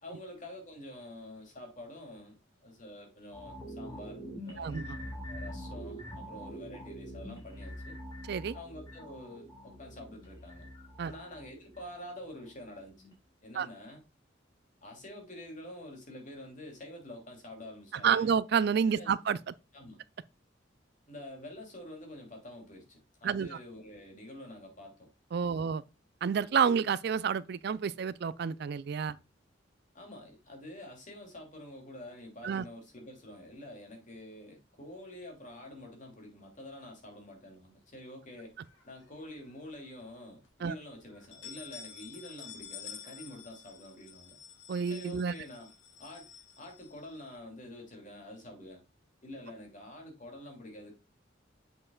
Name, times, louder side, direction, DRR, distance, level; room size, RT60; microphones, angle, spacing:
voice 1, 0.0-4.8 5.3-7.9 8.5-10.7 11.0-12.9 13.4-14.0 14.8-18.3 18.9-19.1 19.7-20.0 21.1-25.1 25.4-25.7 29.1-29.2 29.9-38.5 38.8-44.4 44.9-45.7 46.0-46.3 46.6-48.8 49.2-51.0, left 1 dB, 40° left, 2.8 m, -47 dB
sound 1, 3.3-12.6 13.0-13.1, equal, 20° left, 3.5 m, -45 dB
voice 2, 4.6-5.0 8.3-8.5 11.0-11.1 13.6-13.7 18.0-19.4 23.2-23.5 25.3-25.8 26.2-29.2 32.4-32.6 40.6-40.7 44.7-45.3, right 6 dB, 60° right, 0.4 m, -29 dB
sound 2, 38.6-39.6 40.0-40.1 40.4-40.5 41.1-47.3, left 7 dB, 80° left, 1.7 m, -50 dB
7.6 x 6.6 x 2.3 m
head